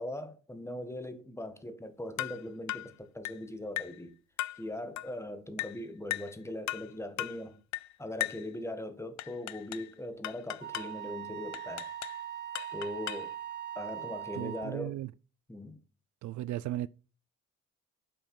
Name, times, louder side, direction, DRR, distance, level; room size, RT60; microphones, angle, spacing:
voice 1, 0.0-4.1 4.5-7.6 8.0-11.9 12.7-13.3 13.7-15.0 15.5-15.8, left 1 dB, 10° left, 1.5 m, -40 dB
sound 1, 2.2-2.4 2.7-2.9 3.2-3.4 3.8-4.0 4.4-4.6 5.0-5.1 5.6-5.8 6.1-6.3 6.7-6.9 7.2-7.4 7.7-7.9 8.2-8.5 9.2-9.9 10.2-10.9 11.5-12.2 12.5-13.3, left 16 dB, 65° left, 0.5 m, -37 dB
Wind instrument woodwind instrument, 10.6-14.8, right 11 dB, 35° right, 1.0 m, -41 dB
voice 2, 14.3-15.1 16.2-16.9, right 14 dB, 70° right, 0.4 m, -36 dB
8.5 x 5.8 x 5.4 m
cardioid pair, 90°, 30 cm